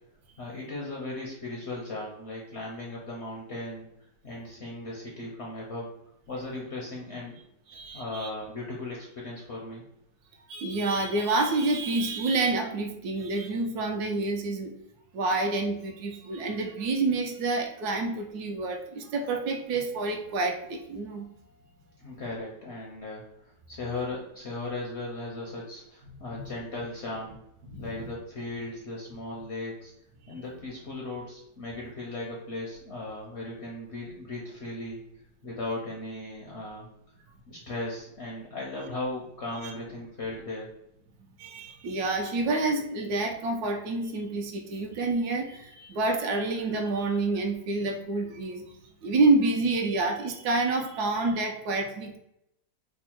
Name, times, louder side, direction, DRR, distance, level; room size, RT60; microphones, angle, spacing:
voice 1, 0.4-5.9 6.3-7.3 7.9-9.8 22.0-27.4 27.8-29.9 30.3-35.0 35.4-36.9 37.5-40.7, left 2 dB, 60° left, -2 dB, 0.7 m, -37 dB
voice 2, 7.7-8.3 10.5-14.7 15.1-21.3 26.3-26.4 27.7-27.9 30.3-30.4 39.6-39.7 41.4-48.7 49.0-52.2, right 3 dB, 75° right, 4 dB, 1.0 m, -28 dB
3.5 x 2.0 x 4.3 m, 0.79 s
omnidirectional pair, 1.8 m